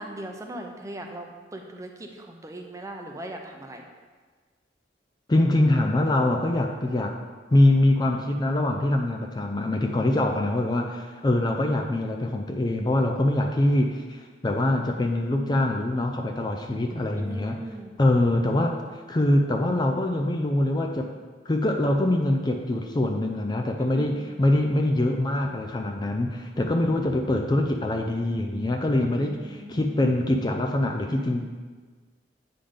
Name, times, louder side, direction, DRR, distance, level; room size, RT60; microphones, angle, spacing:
voice 1, 0.0-3.8 10.0-10.5 11.3-11.9 17.2-18.0 23.8-24.3 26.5-27.1 29.1-30.2, right 1 dB, 15° right, 3 dB, 0.6 m, -40 dB
voice 2, 5.3-7.1 7.5-17.6 18.0-18.7 19.1-21.1 21.5-31.4, left 1 dB, 25° left, 3 dB, 0.4 m, -24 dB
8.5 x 3.8 x 5.1 m, 1.4 s
head